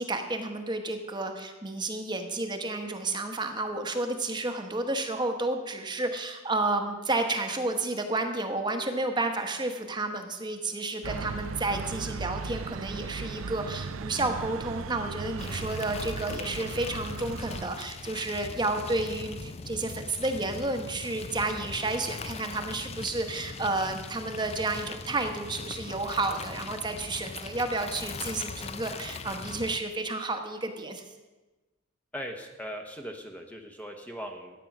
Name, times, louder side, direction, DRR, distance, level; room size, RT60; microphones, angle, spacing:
voice 1, 0.0-31.0, right 2 dB, 20° right, 5 dB, 1.0 m, -31 dB
sound 1, 11.0-17.7, right 4 dB, 75° right, 0.5 m, -37 dB
sound 2, 15.4-29.8, left 4 dB, 30° left, 0.5 m, -40 dB
voice 2, 32.1-34.6, equal, 5° left, 3 dB, 0.9 m, -39 dB
13.0 x 9.1 x 6.0 m, 1.2 s
head